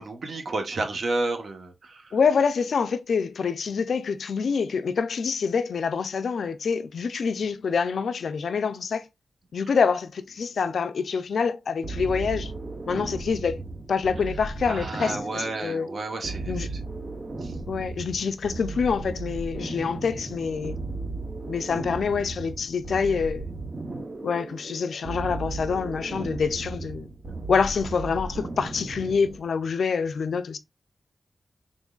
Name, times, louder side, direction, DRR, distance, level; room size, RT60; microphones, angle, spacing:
voice 1, 0.0-2.2 14.7-16.5 17.4-17.5, right 2 dB, 60° right, 1.0 m, -31 dB
voice 2, 2.1-9.1 9.5-12.5 12.9-13.6 13.9-15.9 16.5-16.7 17.7-20.8 21.5-23.5 24.2-27.1 27.5-30.6, left 5 dB, 80° left, 0.4 m, -26 dB
sound 1, 11.8-29.4, right 3 dB, 35° right, 0.8 m, -35 dB
3.9 x 3.7 x 2.3 m
wide cardioid pair, 175°, 0 cm